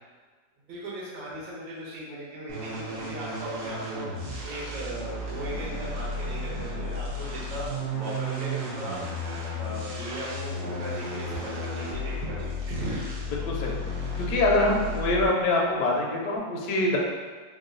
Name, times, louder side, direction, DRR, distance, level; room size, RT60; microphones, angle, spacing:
voice 1, 0.7-4.1 4.4-9.1 9.5-13.0, right 1 dB, 80° right, -7 dB, 1.8 m, -37 dB
sound 1, 2.5-15.5, left 1 dB, 60° right, 1.3 m, -33 dB
voice 2, 13.3-13.8 14.2-17.0, left 2 dB, 65° left, -2 dB, 1.0 m, -24 dB
3.8 x 2.2 x 3.7 m, 1.4 s
omnidirectional pair, 2.0 m